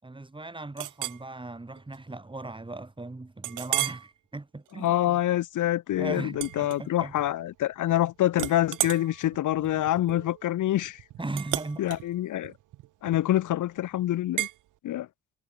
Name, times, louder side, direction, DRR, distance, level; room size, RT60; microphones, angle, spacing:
voice 1, 0.0-5.2 6.0-7.1 11.2-11.8, right 2 dB, 15° right, 4.6 m, -38 dB
Chink clink, 0.8-1.2 1.8-2.0 2.4-2.5 3.4-4.1 4.6-4.9 6.3-7.3 7.6-8.0 8.3-13.5 14.4-14.6, right 15 dB, 85° right, 3.1 m, -34 dB
voice 2, 4.8-11.0 11.8-12.5 13.0-14.5 14.8-15.1, left 13 dB, 80° left, 3.9 m, -26 dB
cardioid pair, 90°, 30 cm